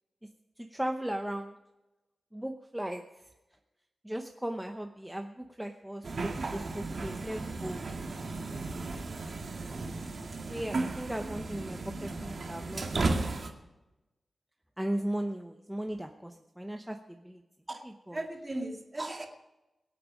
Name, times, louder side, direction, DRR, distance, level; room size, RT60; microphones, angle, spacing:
voice 1, 0.6-1.6 2.3-3.2 4.0-7.8 10.5-13.3 14.8-17.4 18.1-18.2, right 1 dB, 5° right, 4 dB, 0.8 m, -37 dB
sound 1, 6.0-13.5, right 3 dB, 55° right, 2.0 m, -35 dB
voice 2, 17.7-19.3, right 2 dB, 25° right, 2 dB, 2.1 m, -37 dB
23.0 x 8.5 x 5.2 m, 1.0 s
wide cardioid pair, 135°, 0 cm